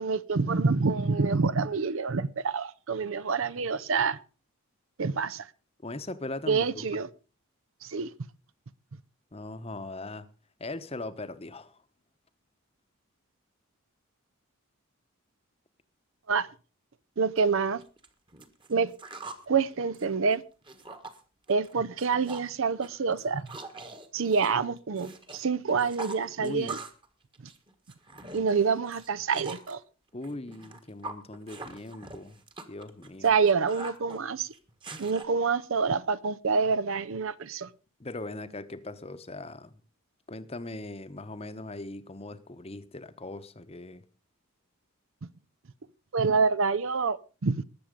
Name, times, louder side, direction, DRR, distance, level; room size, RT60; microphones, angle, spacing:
voice 1, 0.0-4.2 5.0-5.5 6.5-7.1 7.8-8.1 16.3-16.5 17.2-17.8 18.7-18.9 19.5-20.4 21.5-23.5 24.1-26.8 28.3-29.8 33.2-34.5 35.0-37.7 46.1-47.6, right 5 dB, 60° right, 0.6 m, -27 dB
voice 2, 5.8-6.9 9.3-10.3 10.6-11.8 26.4-26.8 30.1-32.4 32.7-33.3 38.0-39.8 40.3-44.0, left 2 dB, 25° left, 0.9 m, -39 dB
sound 1, 17.4-17.5 17.8-19.5 19.8-21.2 21.5-21.7 22.0-22.5 22.8-25.4 25.7-27.1 27.3-29.7 30.2-35.2, right 3 dB, 20° right, 1.4 m, -43 dB
20.0 x 7.3 x 5.1 m
head